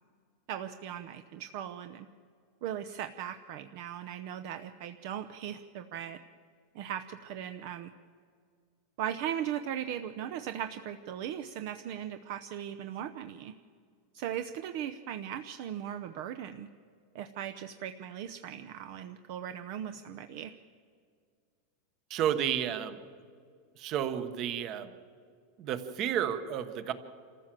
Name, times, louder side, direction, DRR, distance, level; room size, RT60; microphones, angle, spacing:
voice 1, 0.5-2.1 2.6-6.2 6.7-7.9 9.0-13.5 14.1-16.7 17.1-20.5, right 10 dB, 50° right, 9 dB, 0.7 m, -38 dB
voice 2, 22.1-23.0 23.8-24.9 25.6-26.9, right 9 dB, 35° right, 12 dB, 1.1 m, -31 dB
26.5 x 14.5 x 7.6 m, 2.1 s
supercardioid pair, 170°, 0 cm